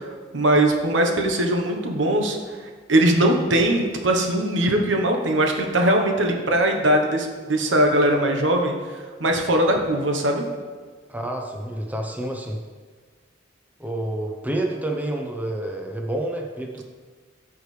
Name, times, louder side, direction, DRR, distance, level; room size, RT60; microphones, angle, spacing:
voice 1, 0.3-2.4 2.9-8.7 9.2-10.4, right 1 dB, 75° right, 3 dB, 1.1 m, -20 dB
voice 2, 11.1-12.6 13.8-16.8, right 1 dB, 10° right, 1 dB, 0.7 m, -28 dB
14.0 x 4.9 x 3.3 m, 1.5 s
head